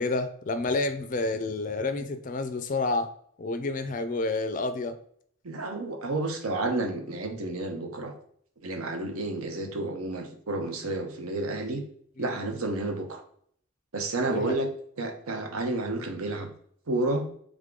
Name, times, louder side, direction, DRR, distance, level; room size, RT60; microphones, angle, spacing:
voice 1, 0.0-3.1 3.4-5.0 12.2-12.3 14.3-14.6, left 3 dB, 35° left, 10 dB, 0.3 m, -29 dB
voice 2, 5.4-8.1 8.6-11.8 12.2-13.2 13.9-14.7 15.0-16.5 16.9-17.3, right 2 dB, 85° right, 4 dB, 0.8 m, -30 dB
3.6 x 3.5 x 3.7 m, 0.63 s
head